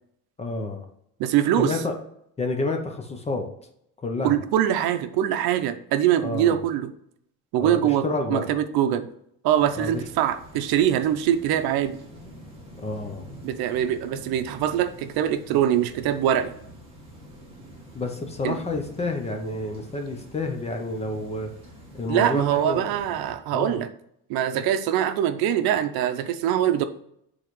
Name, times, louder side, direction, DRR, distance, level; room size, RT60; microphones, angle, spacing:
voice 1, 0.4-0.9 1.6-1.9 2.4-3.5 4.0-4.4 6.2-6.6 7.6-8.5 9.8-10.0 12.8-13.3 17.9-21.5 21.9-22.8 23.5-23.8, left 2 dB, 15° left, 4 dB, 0.6 m, -29 dB
voice 2, 1.2-1.7 4.2-6.9 7.5-8.0 8.3-9.1 9.4-12.0 13.4-16.5 18.4-18.6 22.1-23.9 24.3-26.8, right 10 dB, 75° right, 10 dB, 0.7 m, -23 dB
sound 1, 9.5-23.3, equal, 15° right, 2.1 m, -46 dB
7.8 x 3.9 x 3.1 m, 0.73 s
cardioid pair, 170°, 37 cm